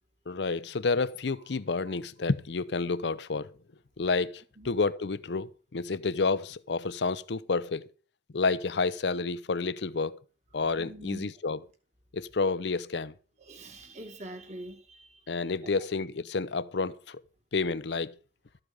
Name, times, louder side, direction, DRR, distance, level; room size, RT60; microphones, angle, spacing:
voice 1, 0.3-3.5 4.0-7.9 8.3-10.2 10.5-11.6 12.1-13.1 15.3-17.2 17.5-18.1, left 4 dB, 80° left, 0.6 m, -30 dB
voice 2, 10.8-11.3 13.4-15.7, right 1 dB, 40° right, 2.1 m, -45 dB
13.5 x 8.0 x 5.3 m
head